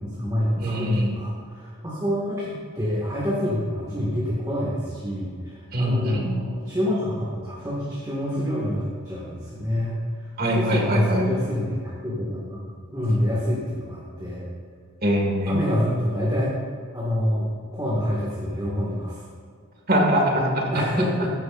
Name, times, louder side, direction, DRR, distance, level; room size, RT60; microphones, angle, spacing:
voice 1, 0.0-9.9 10.5-14.4 15.5-16.5 16.9-19.2 20.7-21.3, equal, 15° right, -7 dB, 1.8 m, -26 dB
voice 2, 0.6-1.2 5.7-6.3 10.4-11.3 15.0-15.6 19.9-20.8, equal, 40° right, 0 dB, 1.9 m, -22 dB
14.5 x 11.0 x 2.6 m, 2.1 s
head